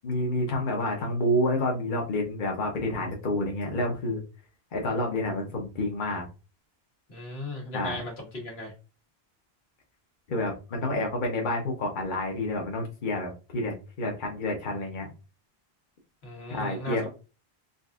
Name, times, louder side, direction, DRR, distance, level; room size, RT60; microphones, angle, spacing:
voice 1, 0.0-4.2 4.7-6.2 7.7-8.0 10.3-15.1 16.5-17.1, left 1 dB, 55° left, 1 dB, 1.0 m, -29 dB
voice 2, 7.1-8.7 16.2-17.1, left 1 dB, 80° left, -1 dB, 1.6 m, -37 dB
4.0 x 2.5 x 2.3 m, 0.31 s
omnidirectional pair, 1.0 m